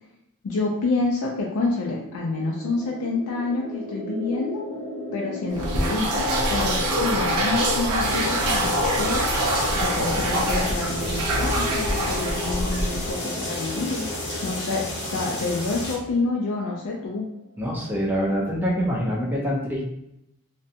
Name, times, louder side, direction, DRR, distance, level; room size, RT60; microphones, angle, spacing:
voice 1, 0.4-4.6 5.1-6.1 6.5-9.3 9.7-14.0 14.4-17.2, left 3 dB, 85° left, -2 dB, 0.4 m, -28 dB
sound 1, 1.7-17.4, left 1 dB, 45° right, 0.7 m, -37 dB
sound 2, 5.5-13.2, right 1 dB, 85° right, 0.5 m, -24 dB
sound 3, 8.0-16.0, left 1 dB, 50° left, 0.7 m, -32 dB
voice 2, 17.6-19.8, equal, 10° right, -3 dB, 0.5 m, -25 dB
2.5 x 2.2 x 2.7 m, 0.81 s
head